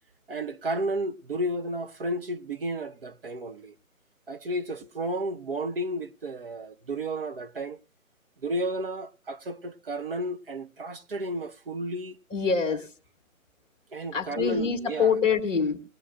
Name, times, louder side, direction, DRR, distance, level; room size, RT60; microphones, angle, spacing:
voice 1, 0.3-3.7 4.3-7.8 8.4-12.2 13.9-15.1, right 1 dB, 40° right, 0.9 m, -32 dB
voice 2, 12.3-12.9 14.1-15.8, left 6 dB, 10° left, 1.1 m, -25 dB
20.0 x 9.7 x 2.5 m
figure-of-eight pair, 150°, 42 cm